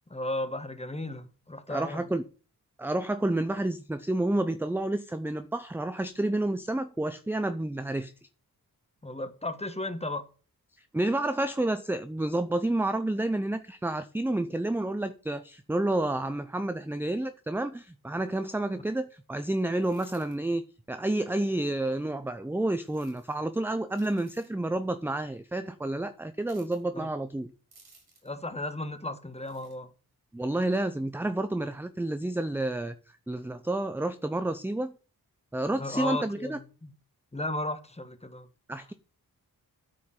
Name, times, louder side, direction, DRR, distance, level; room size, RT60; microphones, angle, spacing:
voice 1, 0.1-2.0 9.0-10.3 26.9-27.1 28.2-29.9 35.8-36.6 36.8-36.9 37.3-38.5, left 2 dB, 15° left, 1.2 m, -34 dB
voice 2, 1.7-2.2 2.8-8.1 10.9-20.6 20.9-27.5 30.3-32.9 33.3-35.0 35.5-36.6 38.7-38.9, right 1 dB, 5° right, 0.5 m, -30 dB
sound 1, 19.8-20.4 22.8-23.3 23.9-24.5 26.4-26.8 27.7-28.3 29.4-29.8, right 3 dB, 80° right, 6.3 m, -58 dB
12.0 x 5.0 x 5.8 m
wide cardioid pair, 125°, 37 cm